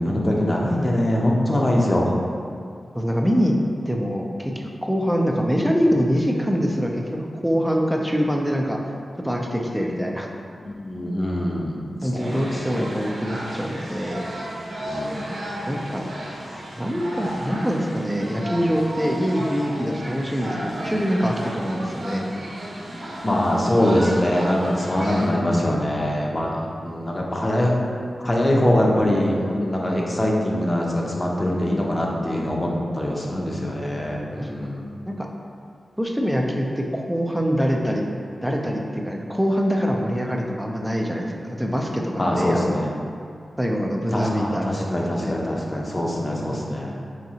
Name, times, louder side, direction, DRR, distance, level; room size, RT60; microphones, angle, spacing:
voice 1, 0.0-2.2 10.6-11.9 12.1-12.4 14.8-15.3 23.2-27.8 28.2-32.7 32.9-34.9 42.2-42.9 44.1-46.9, left 1 dB, 35° left, -2 dB, 0.7 m, -23 dB
voice 2, 2.9-3.6 3.9-8.8 9.2-10.3 12.0-14.3 15.7-16.0 16.8-22.3 34.4-34.5 35.1-35.3 36.0-38.1 38.4-42.8 43.6-45.4, equal, 5° right, 0 dB, 0.5 m, -24 dB
sound 1, 12.2-25.3, equal, 80° right, 0.7 m, -33 dB
4.8 x 2.6 x 2.8 m, 2.3 s
cardioid pair, 55°, 0 cm